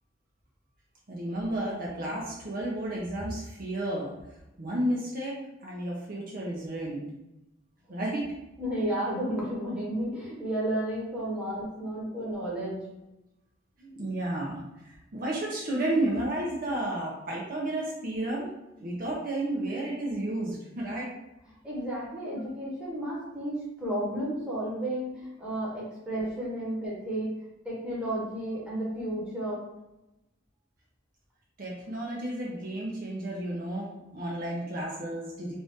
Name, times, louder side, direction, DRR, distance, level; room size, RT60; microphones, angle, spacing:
voice 1, 1.1-4.1 4.6-7.0 7.9-8.3 11.3-11.4 12.0-12.1 13.8-14.6 15.1-18.5 18.8-21.1 31.6-35.6, right 1 dB, 45° right, -4 dB, 0.6 m, -32 dB
voice 2, 8.6-12.9 21.5-27.3 27.6-29.6, right 1 dB, 5° right, -7 dB, 1.0 m, -32 dB
2.6 x 2.5 x 3.5 m, 0.94 s
head